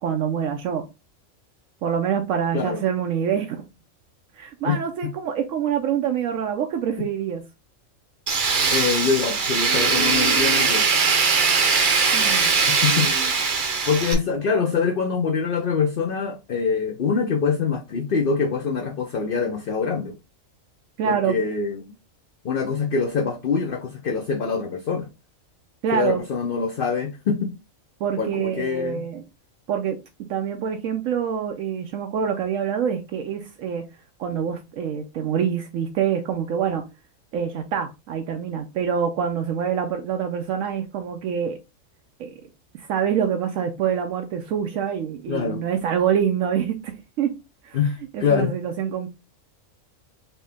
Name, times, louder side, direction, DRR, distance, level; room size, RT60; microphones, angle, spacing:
voice 1, 0.0-0.8 1.8-3.6 4.3-7.4 12.1-12.5 21.0-21.4 25.8-26.2 28.0-29.2 29.7-30.0 30.3-33.9 34.2-36.8 37.3-41.6 42.2-42.3 42.7-47.3 47.6-47.8 48.1-49.1, right 8 dB, 75° right, 1.0 m, -25 dB
voice 2, 2.5-2.8 4.6-4.8 8.7-10.8 12.8-13.1 13.9-20.1 21.0-21.8 22.4-25.1 25.9-27.5 28.2-29.0 45.3-45.6 47.7-48.5, left 5 dB, 55° left, 0.7 m, -24 dB
Tools, 8.3-14.1, right 5 dB, 45° right, 0.8 m, -20 dB
4.2 x 2.7 x 3.4 m
omnidirectional pair, 1.4 m